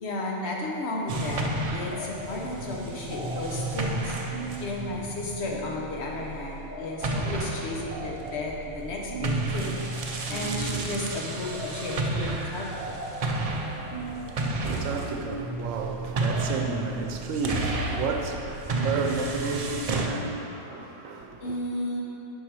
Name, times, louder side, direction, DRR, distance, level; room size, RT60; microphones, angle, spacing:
voice 1, 0.0-13.0 21.4-22.0, left 2 dB, 60° left, 1.2 m, -33 dB
sound 1, 1.1-6.7 7.0-20.1, right 2 dB, 55° right, 0.4 m, -32 dB
sound 2, 1.9-2.5 2.8-21.1, right 2 dB, 10° right, 0.9 m, -38 dB
voice 2, 13.7-21.6, right 4 dB, 80° right, 1.1 m, -32 dB
6.9 x 5.6 x 4.7 m
omnidirectional pair, 1.3 m